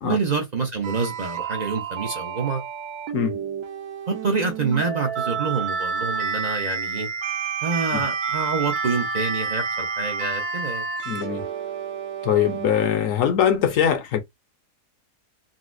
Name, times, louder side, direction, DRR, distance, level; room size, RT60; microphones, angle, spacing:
voice 1, 0.0-2.6 4.1-7.1 7.6-10.8, right 4 dB, 55° right, 0.4 m, -27 dB
sound 1, 0.8-12.9, right 6 dB, 70° right, 1.1 m, -29 dB
voice 2, 11.1-11.5 12.2-14.2, left 9 dB, 60° left, 0.9 m, -22 dB
4.0 x 2.1 x 2.5 m
omnidirectional pair, 1.8 m